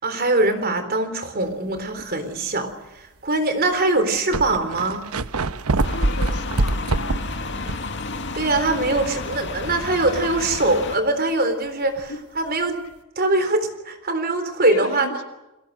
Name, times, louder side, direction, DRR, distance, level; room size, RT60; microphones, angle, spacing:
voice 1, 0.0-2.7 3.0-5.1 8.3-12.1 12.4-12.8 13.2-15.1, right 2 dB, 45° right, 9 dB, 3.8 m, -22 dB
sound 1, 1.8-2.0 2.7-2.8 3.7-3.8 4.0-8.0 8.3-8.4 12.0-12.1, right 2 dB, 85° right, 1.0 m, -25 dB
sound 2, 5.8-11.0, left 3 dB, 55° left, 2.1 m, -31 dB
voice 2, 5.9-7.2 12.1-12.2 14.6-15.2, left 2 dB, 90° left, 8 dB, 3.5 m, -34 dB
29.5 x 21.5 x 6.6 m, 0.99 s
head